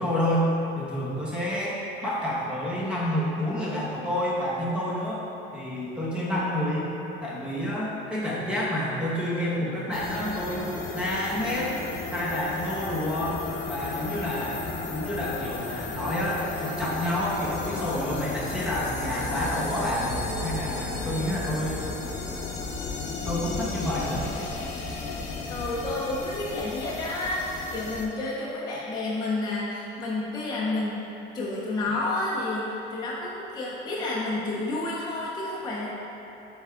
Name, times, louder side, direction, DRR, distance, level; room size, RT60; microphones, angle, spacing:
voice 1, 0.0-5.2 5.5-6.9 7.2-11.7 12.1-13.3 13.7-14.6 14.9-20.1 20.4-21.9 23.2-24.3, equal, 5° right, -7 dB, 1.0 m, -29 dB
sound 1, 9.9-28.0, left 3 dB, 55° left, 0.8 m, -34 dB
voice 2, 25.5-31.0 31.3-35.9, left 2 dB, 20° left, -6 dB, 0.6 m, -30 dB
7.9 x 3.5 x 3.6 m, 2.9 s
cardioid pair, 165°, 21 cm